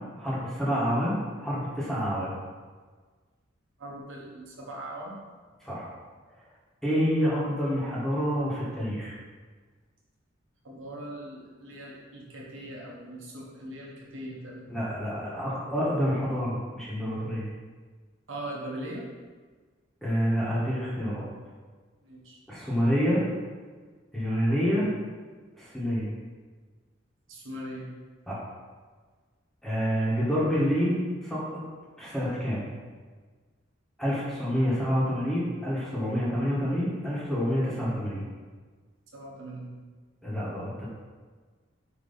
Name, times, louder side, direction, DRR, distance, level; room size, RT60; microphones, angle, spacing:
voice 1, 0.1-2.3 5.6-5.9 6.8-9.1 14.7-17.5 20.0-21.3 22.5-23.2 24.1-24.9 25.6-26.1 28.3-28.4 29.6-31.6 32.0-32.7 34.0-38.2 40.2-40.9, equal, ahead, -8 dB, 1.5 m, -28 dB
voice 2, 3.8-5.2 10.6-14.8 18.3-19.1 22.0-22.4 27.3-27.9 39.1-39.7, right 1 dB, 75° right, -3 dB, 1.4 m, -40 dB
8.8 x 3.1 x 4.2 m, 1.5 s
head